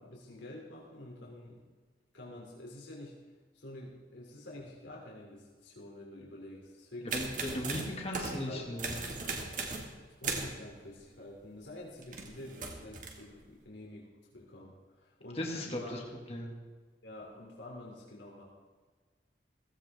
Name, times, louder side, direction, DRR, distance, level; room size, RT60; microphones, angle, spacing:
voice 1, 0.0-1.6 2.1-3.1 3.5-7.2 7.5-7.7 8.5-8.7 10.2-16.0 17.0-18.4, left 1 dB, 85° left, -3 dB, 3.4 m, -48 dB
voice 2, 7.1-9.0 15.3-16.0 16.3-16.5, left 1 dB, 35° left, 0 dB, 2.3 m, -37 dB
sound 1, 7.1-8.5 8.8-9.9 10.2-10.6 12.0-13.2, right 3 dB, 45° right, 2.2 m, -37 dB
16.5 x 16.5 x 3.7 m, 1.5 s
head